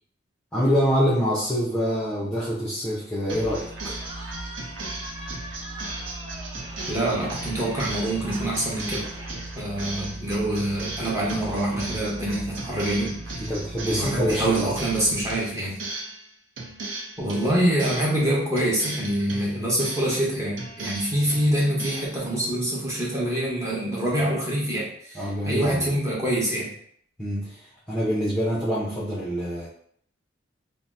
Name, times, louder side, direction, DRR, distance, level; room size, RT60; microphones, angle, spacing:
voice 1, 0.5-4.0 13.4-14.7 25.1-25.9 27.2-29.7, equal, 5° left, -9 dB, 0.5 m, -25 dB
sound 1, 3.3-16.3 16.6-18.2 18.6-20.2 20.6-22.2, right 2 dB, 70° right, 0.6 m, -36 dB
Cheering, 4.0-9.5, right 1 dB, 35° right, 1.1 m, -42 dB
voice 2, 6.9-9.1 9.5-13.5 13.9-15.8 17.2-26.7, right 1 dB, 15° right, -5 dB, 0.8 m, -25 dB
2.7 x 2.0 x 3.3 m, 0.64 s
head